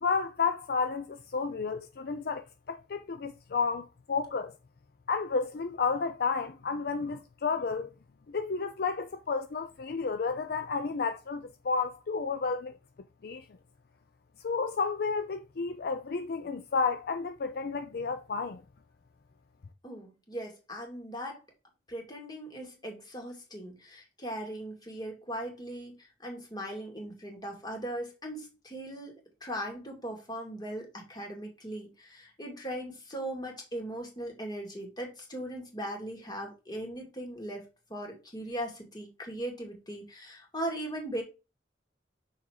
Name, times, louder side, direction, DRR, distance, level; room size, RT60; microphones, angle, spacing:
voice 1, 0.0-4.5 5.1-7.9 8.3-12.8 13.2-13.4 14.4-18.6, left 5 dB, 60° left, 0.5 m, -31 dB
voice 2, 19.8-21.4 21.9-29.1 29.4-41.2, right 1 dB, 25° left, 2.2 m, -39 dB
6.1 x 4.1 x 4.9 m
head